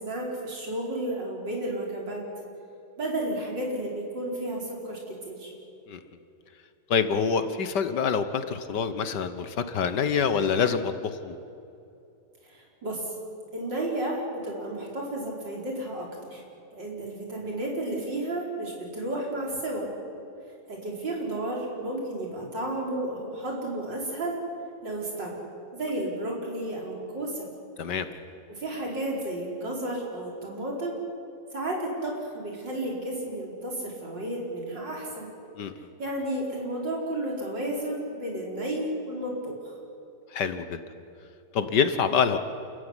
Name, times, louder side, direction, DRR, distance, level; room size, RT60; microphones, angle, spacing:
voice 1, 0.0-2.2 3.0-5.5 12.4-13.1 13.5-16.4 16.7-19.9 20.7-24.4 24.8-25.4 25.7-27.5 28.5-31.0 31.5-35.3 36.0-39.5, right 1 dB, 80° right, -2 dB, 5.5 m, -32 dB
voice 2, 6.9-11.4 27.8-28.1 35.6-35.9 40.3-40.8 41.5-42.4, left 6 dB, 70° left, 10 dB, 1.8 m, -26 dB
29.0 x 14.5 x 9.9 m, 2.7 s
omnidirectional pair, 1.9 m